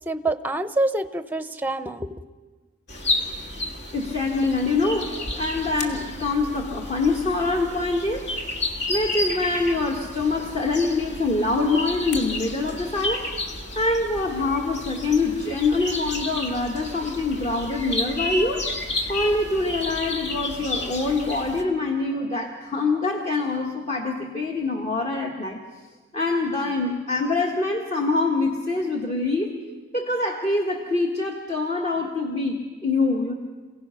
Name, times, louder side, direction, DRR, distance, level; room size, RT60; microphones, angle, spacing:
voice 1, 0.1-2.2, right 2 dB, 10° right, 11 dB, 0.7 m, -26 dB
sound 1, 2.9-21.6, left 2 dB, 60° left, 1.9 m, -32 dB
voice 2, 3.9-13.3 13.7-18.6 19.1-25.6 26.1-29.5 29.9-33.3, left 3 dB, 35° left, 0 dB, 1.5 m, -25 dB
28.0 x 17.0 x 5.7 m, 1.3 s
head